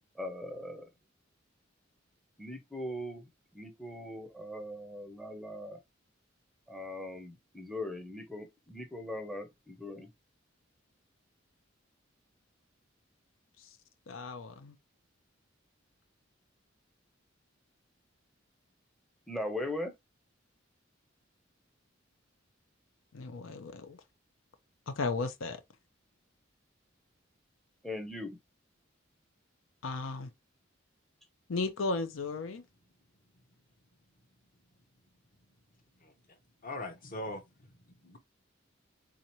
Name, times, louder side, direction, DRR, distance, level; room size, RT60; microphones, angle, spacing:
voice 1, 0.2-0.9 2.4-3.2 3.5-5.8 6.7-10.1 19.3-19.9 27.8-28.4, left 1 dB, ahead, 0.6 m, -40 dB
voice 2, 14.1-14.8 23.1-24.0 24.9-25.6 29.8-30.3 31.5-32.6, left 3 dB, 85° left, 0.6 m, -35 dB
voice 3, 36.0-38.2, left 1 dB, 45° left, 0.9 m, -44 dB
3.7 x 2.8 x 3.0 m
head